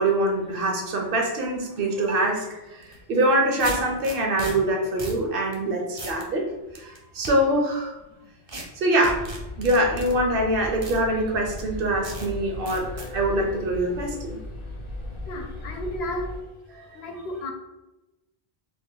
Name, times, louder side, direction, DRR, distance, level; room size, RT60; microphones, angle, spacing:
voice 1, 0.0-6.5 6.7-8.0 8.8-9.3 9.6-14.4 16.7-16.9, right 1 dB, 65° right, 2 dB, 0.8 m, -24 dB
sound 1, 2.8-3.0 3.6-4.5 5.0-5.2 5.5-5.6 6.0-6.2 6.7-7.3 8.5-8.6 9.0-10.1 10.8-11.0 11.6-11.7 12.0-12.3 12.7-13.1, right 2 dB, 35° right, 0.5 m, -36 dB
sound 2, 9.0-16.4, left 1 dB, 35° left, 0.6 m, -37 dB
voice 2, 15.3-16.3 17.0-17.5, left 1 dB, 85° left, 3 dB, 0.8 m, -32 dB
2.8 x 2.4 x 3.7 m, 1.0 s
omnidirectional pair, 1.0 m